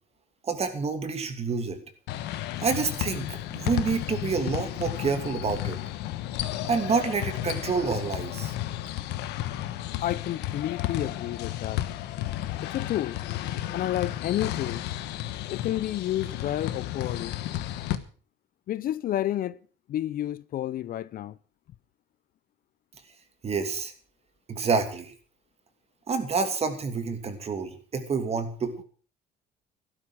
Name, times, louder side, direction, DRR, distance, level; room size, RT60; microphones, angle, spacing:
voice 1, 0.4-1.8 2.6-5.8 6.6-8.5 23.4-23.9 24.5-25.1 26.1-28.7, right 5 dB, 40° right, 2.7 m, -28 dB
sound 1, 2.1-18.0, left 13 dB, 90° left, 1.2 m, -33 dB
voice 2, 10.0-11.8 12.6-13.2 13.7-14.8 15.5-17.4 18.7-19.6 19.9-21.4, left 12 dB, 55° left, 0.6 m, -30 dB
12.5 x 12.5 x 6.2 m
cardioid pair, 110°, 17 cm